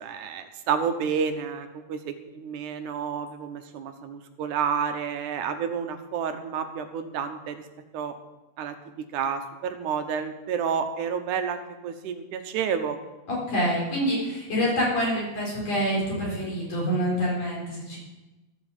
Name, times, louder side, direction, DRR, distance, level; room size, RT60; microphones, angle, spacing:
voice 1, 0.0-7.6 7.9-8.1 8.6-8.7 9.1-13.0, right 7 dB, 85° right, 8 dB, 2.5 m, -30 dB
voice 2, 13.3-18.0, equal, 60° left, -5 dB, 5.4 m, -26 dB
13.5 x 8.3 x 7.4 m, 1.1 s
omnidirectional pair, 3.4 m